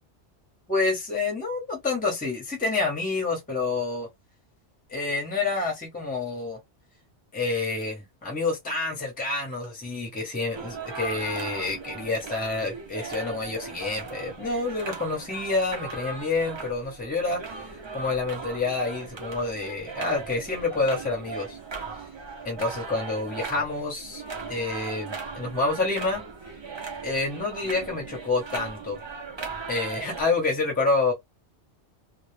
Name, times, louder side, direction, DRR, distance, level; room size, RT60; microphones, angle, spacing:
voice 1, 0.7-4.1 4.9-6.6 7.3-21.6 22.4-24.2 24.5-26.2 27.0-29.0 29.7-31.1, left 3 dB, 10° left, 0.8 m, -28 dB
sound 1, 10.5-30.2, right 4 dB, 40° right, 0.4 m, -38 dB
2.1 x 2.1 x 3.1 m
omnidirectional pair, 1.2 m